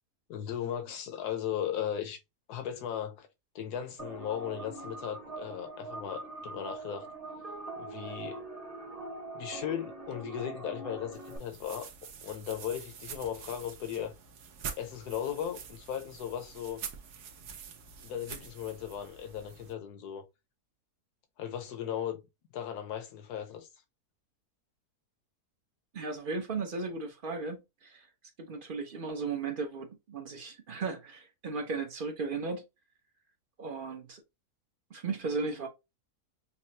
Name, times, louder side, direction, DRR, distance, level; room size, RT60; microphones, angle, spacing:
voice 1, 0.3-2.2 2.5-3.3 3.5-7.1 7.8-8.4 9.3-11.9 12.2-14.1 14.8-16.8 18.0-20.2 21.4-22.2 22.5-23.7, left 9 dB, 80° left, 1.4 m, -37 dB
sound 1, 4.0-11.4, right 2 dB, 25° right, 1.0 m, -42 dB
sound 2, 11.1-19.7, right 7 dB, 80° right, 1.4 m, -46 dB
voice 2, 25.9-28.1 28.4-32.6 33.6-34.2 34.9-35.7, right 4 dB, 50° right, 0.7 m, -36 dB
5.7 x 2.0 x 2.8 m
omnidirectional pair, 1.7 m